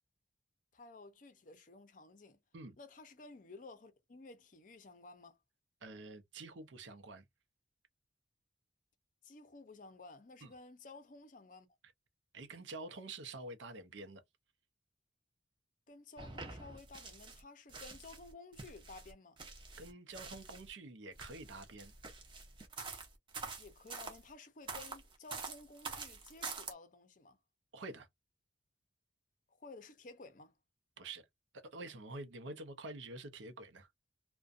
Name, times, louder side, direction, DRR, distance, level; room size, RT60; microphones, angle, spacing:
voice 1, 0.7-2.4 2.8-5.4 9.2-11.7 15.9-19.4 23.6-27.4 29.5-30.5, left 3 dB, 45° left, 0.5 m, -54 dB
voice 2, 5.8-7.2 10.4-10.5 12.3-14.2 19.8-21.9 27.7-28.1 31.0-31.2 31.7-33.9, right 2 dB, 80° right, 0.6 m, -47 dB
sound 1, 16.2-17.4 17.7-20.7 21.1-24.2 24.7-26.7, right 4 dB, 25° right, 0.5 m, -46 dB
2.5 x 2.2 x 2.4 m
head